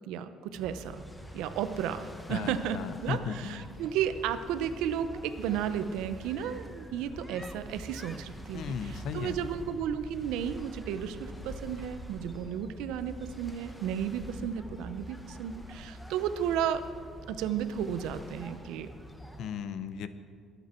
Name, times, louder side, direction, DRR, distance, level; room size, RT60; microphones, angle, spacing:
voice 1, 0.1-1.0 1.3-16.8 17.3-18.9, right 9 dB, 90° right, 11 dB, 0.7 m, -33 dB
sound 1, 0.5-19.5, equal, 5° left, 1.2 m, -45 dB
voice 2, 2.3-3.6 8.5-9.4 19.4-20.1, left 7 dB, 70° left, 12 dB, 0.8 m, -36 dB
22.5 x 8.1 x 4.4 m, 2.2 s
cardioid pair, 110°, 0 cm